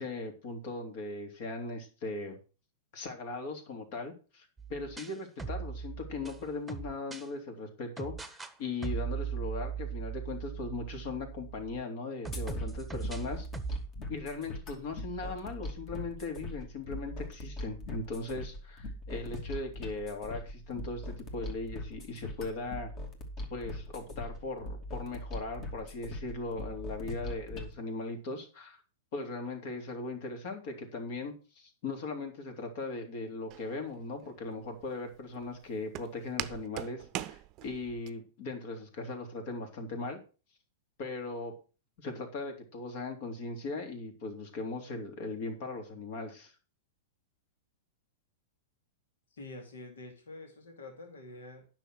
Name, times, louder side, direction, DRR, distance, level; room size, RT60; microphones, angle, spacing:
voice 1, 0.0-2.4 2.9-13.5 14.1-22.9 23.5-28.8 29.1-40.2 41.0-41.5 42.0-46.5, left 3 dB, 55° left, 5 dB, 3.3 m, -39 dB
sound 1, 4.6-7.3 8.0-8.5 8.8-11.8 12.2-13.9, right 6 dB, 5° right, 1.2 m, -38 dB
sound 2, 12.3-27.7, left 1 dB, 35° left, 2.8 m, -41 dB
Walk footsteps, 33.5-38.1, right 14 dB, 40° right, 0.7 m, -42 dB
voice 2, 49.3-51.7, left 2 dB, 75° left, 4 dB, 2.5 m, -47 dB
10.0 x 6.1 x 6.3 m, 0.35 s
hypercardioid pair, 105°, 0 cm